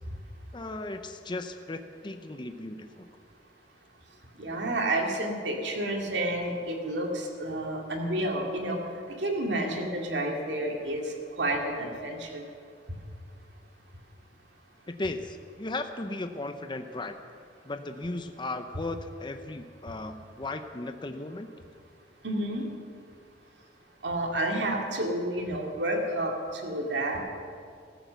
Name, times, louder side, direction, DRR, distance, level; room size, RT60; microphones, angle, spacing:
voice 1, 0.5-3.1 14.9-17.2 17.6-21.5, left 2 dB, 25° left, 7 dB, 0.7 m, -36 dB
voice 2, 4.4-8.8 9.2-12.4 22.2-22.7 24.0-27.2, right 1 dB, 80° right, 1 dB, 2.4 m, -30 dB
15.0 x 13.5 x 6.9 m, 2.3 s
head